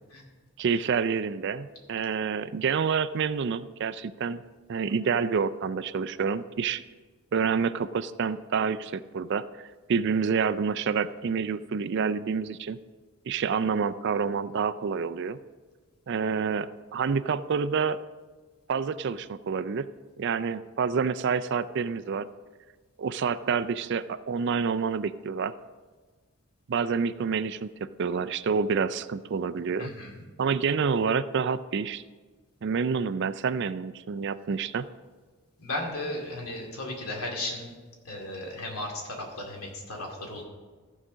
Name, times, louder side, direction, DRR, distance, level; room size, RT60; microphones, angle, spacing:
voice 1, 0.6-4.4 4.7-6.8 7.3-12.8 13.3-15.4 16.1-18.0 18.7-19.9 20.2-22.3 23.0-25.5 26.7-29.9 30.4-32.0 32.6-34.9, right 6 dB, 50° right, 13 dB, 0.3 m, -28 dB
voice 2, 29.8-30.2 35.6-37.7 38.0-40.4, left 1 dB, 80° left, 0 dB, 2.4 m, -35 dB
14.5 x 4.9 x 6.2 m, 1.4 s
head